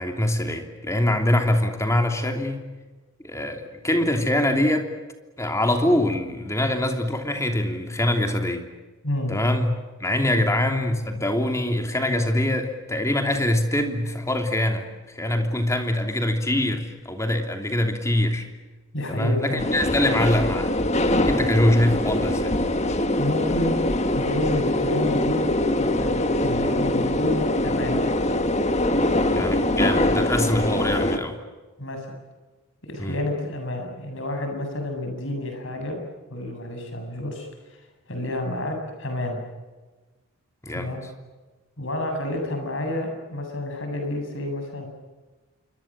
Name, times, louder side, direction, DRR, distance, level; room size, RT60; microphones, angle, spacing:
voice 1, 0.0-2.7 3.2-4.9 5.4-8.6 9.3-18.5 19.1-20.7 21.2-22.5 29.3-31.4 33.0-33.2 40.6-40.9, left 1 dB, 15° left, 5 dB, 3.0 m, -24 dB
voice 2, 9.0-9.4 10.3-10.4 18.9-19.7 23.2-23.8 24.1-25.4 25.8-28.1 31.8-32.1 32.8-36.0 36.3-37.5 38.1-39.4 40.7-41.0 41.8-44.9, left 1 dB, 60° left, 4 dB, 7.9 m, -29 dB
sound 1, 19.6-31.2, left 1 dB, 30° left, 1.6 m, -23 dB
28.0 x 24.5 x 7.6 m, 1.2 s
head